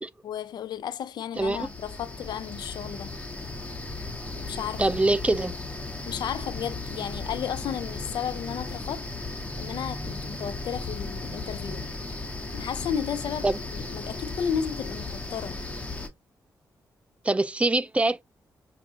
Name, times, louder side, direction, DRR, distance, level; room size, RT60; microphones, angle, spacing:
voice 1, 0.2-3.1 4.4-4.8 6.1-9.0 9.6-11.9 12.5-15.6, left 8 dB, 80° left, 0.5 m, -33 dB
sound 1, 1.3-16.1, left 2 dB, 15° left, 1.3 m, -36 dB
voice 2, 1.4-1.7 4.8-5.5 13.4-13.6 17.2-18.2, right 2 dB, 15° right, 0.4 m, -24 dB
6.1 x 2.5 x 2.8 m
cardioid pair, 75°, 7 cm